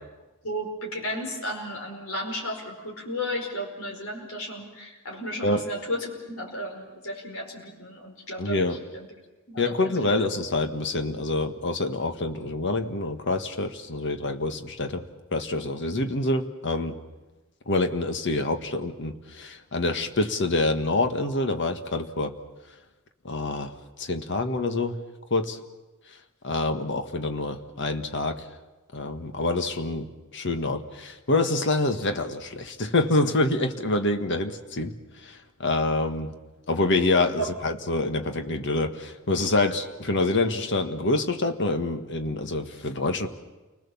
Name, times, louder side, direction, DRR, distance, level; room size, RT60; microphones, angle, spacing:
voice 1, 0.4-9.1 9.5-9.9 37.4-37.5, equal, 80° left, 0 dB, 5.1 m, -34 dB
voice 2, 8.4-8.8 9.6-15.0 15.3-17.0 17.7-22.3 23.2-23.7 24.0-25.0 25.3-25.6 26.4-28.4 28.9-30.1 30.3-34.9 35.2-36.3 36.7-43.3, left 2 dB, 60° left, 7 dB, 1.6 m, -26 dB
29.0 x 20.5 x 7.2 m, 1.1 s
head